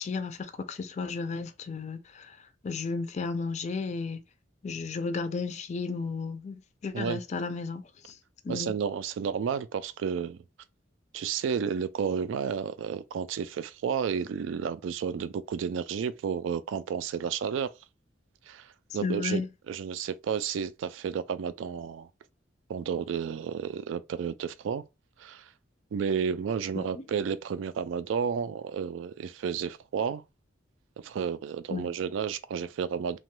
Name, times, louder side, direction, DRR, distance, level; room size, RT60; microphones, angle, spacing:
voice 1, 0.0-4.2 4.6-8.2 8.4-8.7 19.0-19.5 26.7-27.0 31.7-31.9, left 4 dB, 35° left, 0.4 m, -34 dB
voice 2, 8.5-10.4 11.1-17.7 18.5-19.4 19.7-22.1 22.7-24.8 25.2-25.5 25.9-30.2 31.0-33.2, right 7 dB, 80° right, 0.3 m, -31 dB
3.0 x 2.2 x 3.0 m
head